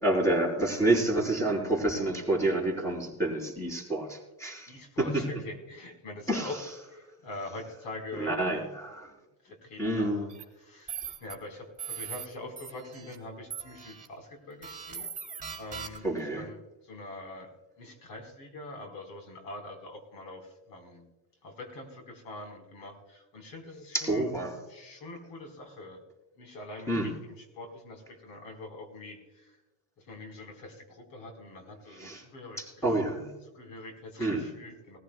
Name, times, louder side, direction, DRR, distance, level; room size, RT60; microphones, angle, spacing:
voice 1, 0.0-5.2 6.3-6.6 8.1-9.1 9.8-10.3 16.0-16.5 23.9-24.6 26.9-27.1 32.0-32.2 32.6-33.3 34.2-34.5, right 2 dB, 5° left, 0 dB, 4.1 m, -28 dB
voice 2, 4.7-6.6 6.9-8.7 9.4-10.1 10.6-15.1 15.6-16.1 16.3-17.5 17.8-21.1 21.4-24.3 24.7-26.0 26.4-27.3 27.6-29.6 30.0-32.6 33.5-35.0, left 2 dB, 85° left, 3 dB, 4.3 m, -44 dB
sound 1, 10.3-10.4 10.9-11.3 11.8-12.3 12.6-13.2 13.5-14.1 14.6-16.2, right 7 dB, 15° right, 2.3 m, -40 dB
20.5 x 15.0 x 2.3 m, 1.1 s
cardioid pair, 135°, 45 cm